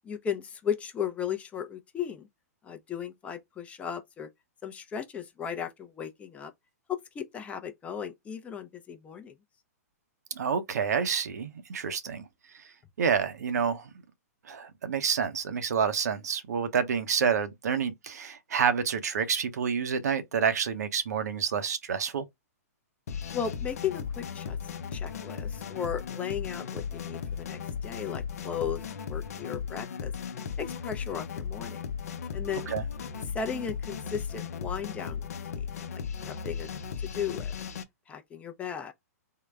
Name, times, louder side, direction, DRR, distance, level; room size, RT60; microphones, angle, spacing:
voice 1, 0.0-2.3 2.6-4.3 4.6-6.5 6.9-9.3 23.3-24.6 24.9-28.8 29.1-30.1 30.6-31.8 32.3-32.7 33.3-35.7 36.3-36.7 37.0-37.6 38.1-38.9, left 8 dB, 15° left, 0.5 m, -36 dB
voice 2, 10.3-12.3 12.5-12.6 13.0-13.9 14.4-22.3 32.7-32.8, right 7 dB, 75° right, 0.7 m, -28 dB
sound 1, 23.1-37.8, left 6 dB, 70° left, 0.6 m, -36 dB
3.7 x 2.1 x 3.4 m
hypercardioid pair, 135°, 9 cm